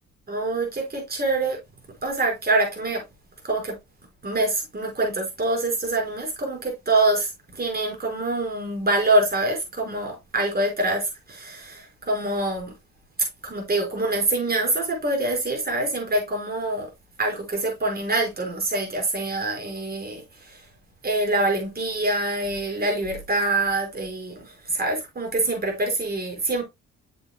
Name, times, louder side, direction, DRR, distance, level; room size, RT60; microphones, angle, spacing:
voice 1, 0.3-1.6 2.0-3.0 3.4-3.7 4.2-12.7 13.4-16.9 17.2-20.2 21.0-26.6, right 2 dB, 30° right, 5.1 m, -25 dB
8.0 x 7.8 x 2.2 m
cardioid pair, 90°, 30 cm